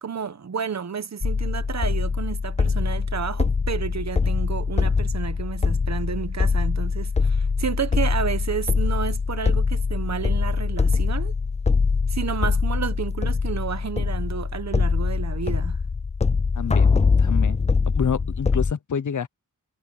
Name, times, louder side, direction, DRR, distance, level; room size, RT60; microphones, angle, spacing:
voice 1, 0.0-11.3 12.1-15.8, right 6 dB, 55° right, 1.1 m, -31 dB
sound 1, 1.2-18.7, left 4 dB, 20° left, 0.4 m, -23 dB
voice 2, 16.5-16.9 17.2-17.6 17.9-19.3, left 7 dB, 60° left, 0.9 m, -27 dB
wide cardioid pair, 165°, 34 cm